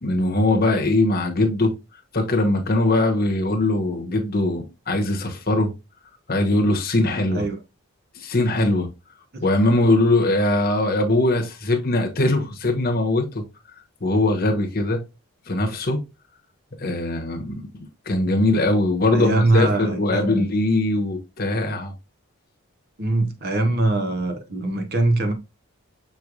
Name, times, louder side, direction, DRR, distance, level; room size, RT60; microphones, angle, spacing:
voice 1, 0.0-1.7 2.1-5.7 6.3-7.5 8.2-8.9 9.4-13.4 14.0-15.0 15.5-16.0 16.8-17.5 18.1-21.9, left 2 dB, 40° left, 1.0 m, -21 dB
voice 2, 19.1-20.4 23.0-25.3, right 2 dB, 45° right, 0.8 m, -22 dB
6.0 x 3.1 x 2.4 m
head